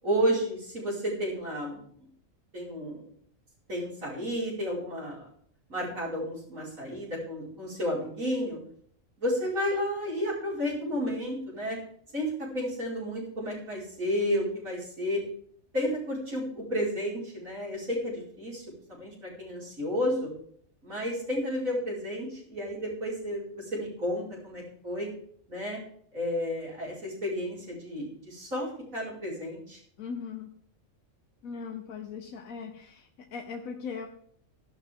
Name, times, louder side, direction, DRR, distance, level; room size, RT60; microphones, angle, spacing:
voice 1, 0.0-1.8 2.5-3.0 3.7-5.2 5.7-8.6 9.2-11.8 12.1-15.2 15.7-20.3 20.8-25.1 25.5-25.8 26.1-29.8, equal, 80° right, -5 dB, 5.7 m, -32 dB
voice 2, 30.0-30.6 31.4-34.1, left 6 dB, 85° left, 4 dB, 1.4 m, -39 dB
14.5 x 12.0 x 3.7 m, 0.62 s
omnidirectional pair, 1.4 m